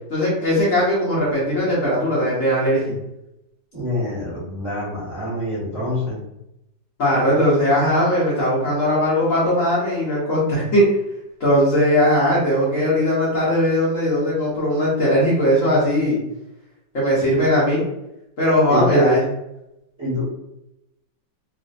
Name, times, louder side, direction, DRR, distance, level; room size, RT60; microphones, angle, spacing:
voice 1, 0.1-3.0 7.0-10.9 11.4-16.2 16.9-17.8 18.4-19.2, equal, 50° left, -7 dB, 1.2 m, -19 dB
voice 2, 3.7-6.2 18.7-19.1 20.0-20.2, equal, 10° right, -9 dB, 0.9 m, -24 dB
3.1 x 2.4 x 2.5 m, 0.87 s
omnidirectional pair, 1.9 m